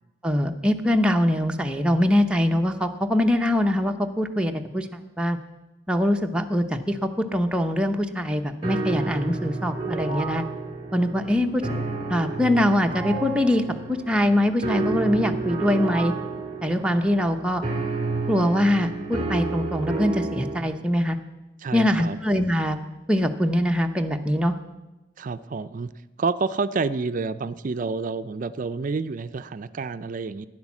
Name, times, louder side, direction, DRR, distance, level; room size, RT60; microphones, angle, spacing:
voice 1, 0.2-4.9 5.2-5.4 5.9-10.5 10.9-11.7 12.1-13.6 13.9-16.1 16.6-17.6 18.3-21.2 21.7-22.8 23.1-24.5, left 1 dB, 5° right, 3 dB, 0.7 m, -23 dB
sound 1, 8.6-20.6, right 3 dB, 25° right, 2.0 m, -30 dB
voice 2, 21.6-22.2 25.2-25.9 26.2-30.5, right 4 dB, 45° right, 13 dB, 0.4 m, -29 dB
10.5 x 9.7 x 7.2 m, 1.1 s
head